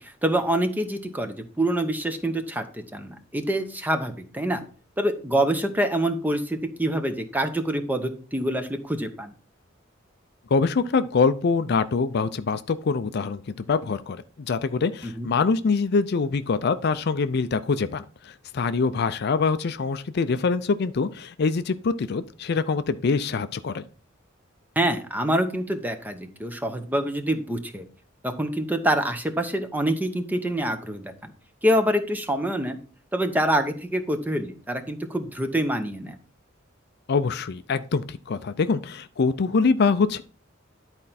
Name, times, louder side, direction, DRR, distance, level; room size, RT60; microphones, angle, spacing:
voice 1, 0.0-4.6 5.0-9.3 15.0-15.3 24.8-27.8 28.2-31.3 31.6-32.8 33.1-36.2, right 1 dB, 10° right, 8 dB, 0.8 m, -26 dB
voice 2, 10.5-13.4 13.7-23.8 37.1-40.2, left 4 dB, 55° left, 12 dB, 0.5 m, -24 dB
10.5 x 4.4 x 4.1 m, 0.39 s
head